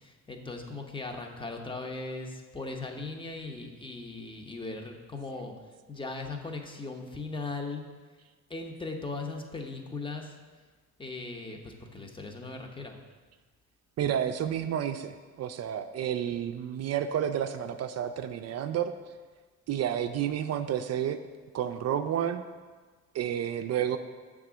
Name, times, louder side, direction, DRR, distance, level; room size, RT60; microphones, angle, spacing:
voice 1, 0.0-5.5 5.9-7.8 8.5-10.3 11.0-13.0, left 3 dB, 15° left, 3 dB, 0.8 m, -38 dB
voice 2, 14.0-18.9 19.7-21.2 21.5-22.4 23.1-24.0, right 9 dB, 60° right, 8 dB, 0.4 m, -30 dB
6.6 x 3.6 x 6.1 m, 1.4 s
cardioid pair, 90°, 30 cm